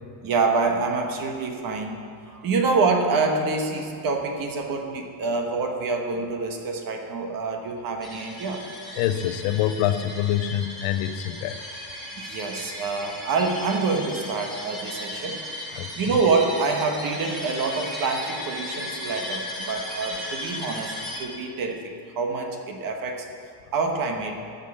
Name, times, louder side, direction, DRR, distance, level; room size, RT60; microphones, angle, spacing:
voice 1, 0.2-8.6 12.2-15.4 15.9-20.9 21.2-23.3 23.7-24.4, right 4 dB, 45° right, 3 dB, 1.4 m, -26 dB
sound 1, 8.0-21.2, left 1 dB, ahead, 2.1 m, -36 dB
voice 2, 9.0-11.6 15.7-15.9, left 11 dB, 80° left, 11 dB, 0.8 m, -25 dB
12.5 x 5.6 x 7.4 m, 2.4 s
cardioid pair, 160°, 49 cm